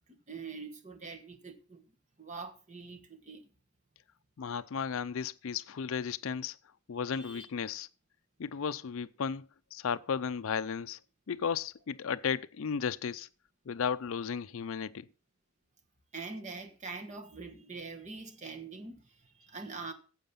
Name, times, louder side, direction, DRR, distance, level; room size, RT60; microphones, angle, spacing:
voice 1, 0.1-1.8 2.2-3.5 7.0-7.5 16.1-19.9, right 4 dB, 30° right, 1.3 m, -44 dB
voice 2, 4.4-6.6 6.9-7.9 8.4-11.0 11.3-13.3 13.7-15.1, left 6 dB, 65° left, 0.4 m, -34 dB
9.1 x 7.5 x 5.6 m
head